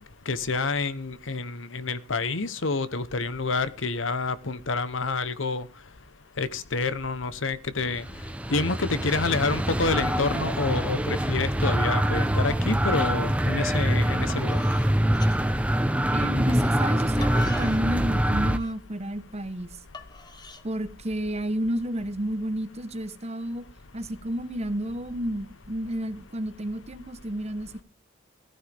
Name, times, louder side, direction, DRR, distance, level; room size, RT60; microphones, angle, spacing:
voice 1, 0.3-5.7 6.4-8.0 8.5-14.6, left 3 dB, 80° left, 1.1 m, -28 dB
sound 1, 7.8-18.6, equal, 5° right, 0.8 m, -25 dB
sound 2, 14.3-16.2 16.8-20.6, left 4 dB, 20° left, 1.2 m, -44 dB
voice 2, 16.1-19.7 20.6-23.6 23.9-27.8, right 1 dB, 35° right, 1.2 m, -31 dB
16.0 x 13.5 x 3.6 m
head